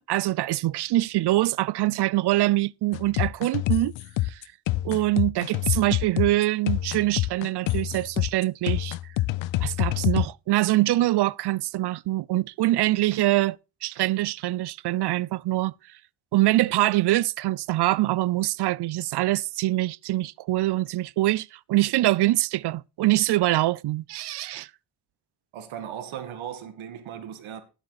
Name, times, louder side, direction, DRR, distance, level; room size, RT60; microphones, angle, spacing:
voice 1, 0.0-3.9 4.2-4.4 4.8-9.0 9.6-13.6 13.8-15.7 16.3-24.7, right 17 dB, 60° right, 0.5 m, -24 dB
sound 1, 2.9-10.3, left 16 dB, 75° left, 0.5 m, -26 dB
voice 2, 25.5-27.6, right 9 dB, 85° right, 1.9 m, -37 dB
11.5 x 7.9 x 4.1 m
cardioid pair, 95°, 46 cm